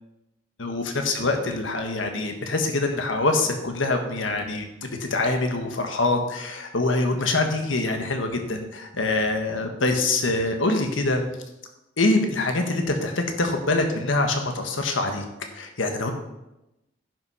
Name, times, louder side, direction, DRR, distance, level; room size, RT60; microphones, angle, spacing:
voice 1, 0.6-11.2 12.0-15.2 15.5-16.1, left 2 dB, 80° left, 4 dB, 1.4 m, -24 dB
10.5 x 6.1 x 5.6 m, 0.93 s
head